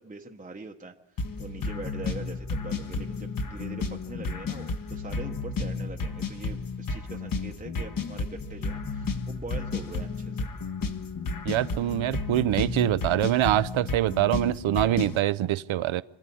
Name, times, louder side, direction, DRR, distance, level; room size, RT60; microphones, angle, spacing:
voice 1, 0.0-10.5, right 3 dB, 15° right, 0.8 m, -42 dB
sound 1, 1.2-15.2, left 3 dB, 45° left, 1.1 m, -32 dB
voice 2, 11.4-16.0, right 13 dB, 80° right, 0.6 m, -24 dB
25.5 x 12.5 x 8.4 m
wide cardioid pair, 150°, 47 cm